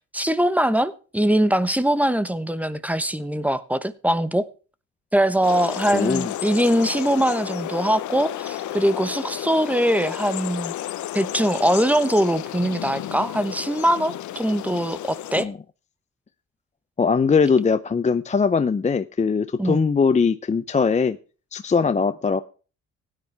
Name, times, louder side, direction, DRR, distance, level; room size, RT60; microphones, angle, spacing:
voice 1, 0.1-4.5 5.1-10.7 11.1-15.5 19.6-19.9, right 1 dB, 5° right, 14 dB, 1.0 m, -22 dB
sound 1, 5.4-15.4, left 12 dB, 75° left, 0.9 m, -32 dB
voice 2, 5.9-6.3 15.3-15.6 17.0-21.2 21.5-22.4, left 5 dB, 25° left, 11 dB, 0.6 m, -21 dB
16.0 x 9.9 x 3.4 m, 0.36 s
cardioid pair, 90°, 30 cm